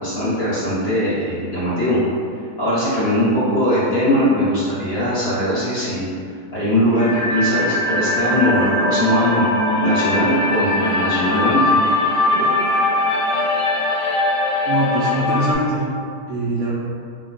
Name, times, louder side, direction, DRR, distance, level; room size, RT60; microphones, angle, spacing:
voice 1, 0.0-2.0 2.6-6.1 6.5-9.4 9.8-11.8, left 1 dB, 45° left, -11 dB, 0.9 m, -20 dB
sound 1, 6.9-15.5, left 1 dB, 75° left, 1.1 m, -20 dB
voice 2, 14.7-15.9 16.3-16.7, right 1 dB, 70° right, -8 dB, 0.7 m, -22 dB
2.7 x 2.2 x 4.0 m, 2.4 s
omnidirectional pair, 1.8 m